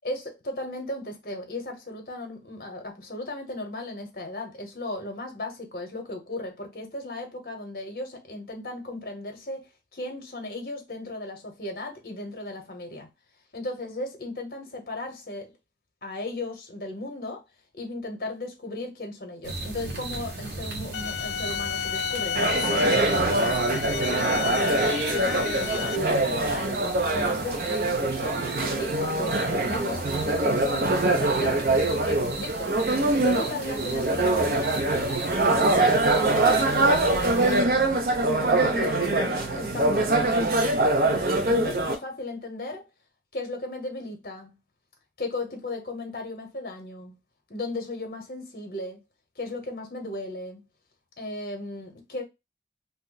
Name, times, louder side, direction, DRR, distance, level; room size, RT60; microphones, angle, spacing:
voice 1, 0.0-13.1 13.5-15.5 16.0-17.4 17.7-22.4 22.7-23.6 24.2-26.8 27.1-32.7 33.1-35.3 36.2-37.8 38.6-40.7 41.5-42.9 43.3-44.6 45.2-47.2 47.5-49.0 49.4-50.6 51.2-52.2, left 2 dB, 55° left, 0.9 m, -36 dB
sound 1, 19.4-37.6, right 2 dB, 75° right, 1.0 m, -37 dB
sound 2, 20.9-26.0, left 9 dB, 85° left, 0.3 m, -32 dB
sound 3, 22.3-42.0, right 2 dB, 55° right, 0.5 m, -24 dB
2.7 x 2.1 x 3.8 m
head